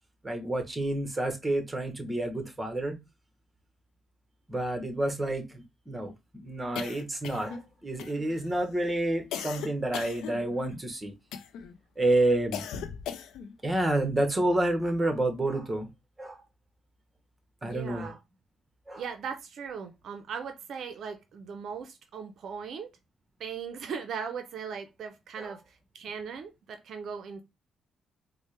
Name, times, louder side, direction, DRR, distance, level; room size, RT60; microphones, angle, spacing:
voice 1, 0.2-3.0 4.5-11.1 12.0-12.7 13.6-15.9 16.2-16.4 17.6-18.1 18.9-19.0 25.4-25.5, right 1 dB, 15° right, 1.0 m, -29 dB
sound 1, 6.7-7.7 8.0-8.5 9.3-10.8 11.3-11.7 12.5-13.5, left 8 dB, 90° left, 0.4 m, -38 dB
voice 2, 17.6-18.2 19.0-22.9 23.4-27.4, right 6 dB, 65° right, 0.5 m, -38 dB
4.2 x 2.1 x 3.2 m
cardioid pair, 90°, 0 cm